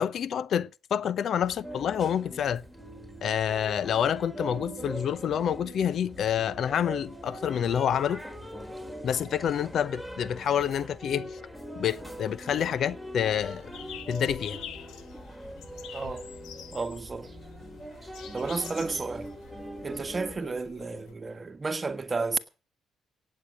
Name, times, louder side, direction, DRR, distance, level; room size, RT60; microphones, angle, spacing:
voice 1, 0.0-2.6 3.2-8.2 9.0-11.4 11.8-13.7 14.1-14.6, left 9 dB, 65° left, 0.7 m, -28 dB
sound 1, 1.4-20.4, right 1 dB, 5° left, 3.9 m, -42 dB
sound 2, 13.3-21.1, left 9 dB, 85° left, 1.6 m, -46 dB
voice 2, 15.9-16.3 16.7-17.3 18.3-19.3 19.8-22.4, right 4 dB, 30° right, 1.6 m, -32 dB
17.5 x 8.5 x 6.3 m
cardioid pair, 90°, 0 cm